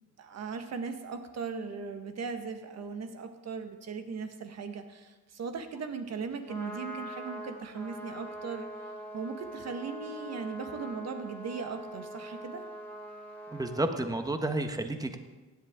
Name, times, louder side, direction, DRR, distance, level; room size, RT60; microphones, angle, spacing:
voice 1, 0.2-8.7 9.1-12.6, right 5 dB, 60° right, 6 dB, 1.5 m, -38 dB
Trumpet, 6.3-13.9, right 1 dB, 5° left, 2.8 m, -43 dB
voice 2, 13.5-15.2, right 2 dB, 10° right, 7 dB, 1.1 m, -31 dB
16.0 x 10.0 x 3.7 m, 1.2 s
cardioid pair, 90°, 30 cm